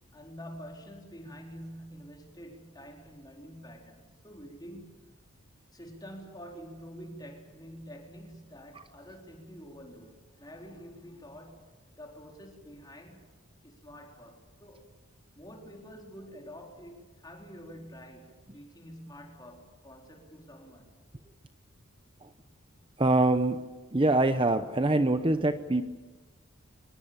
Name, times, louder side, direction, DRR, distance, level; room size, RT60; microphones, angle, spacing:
voice 1, 0.1-5.0 5.7-13.3 13.6-14.9 15.3-20.9, equal, 20° left, 4.2 m, -47 dB
voice 2, 23.0-23.6 23.9-25.8, right 2 dB, 25° right, 0.7 m, -24 dB
25.5 x 20.5 x 8.9 m
head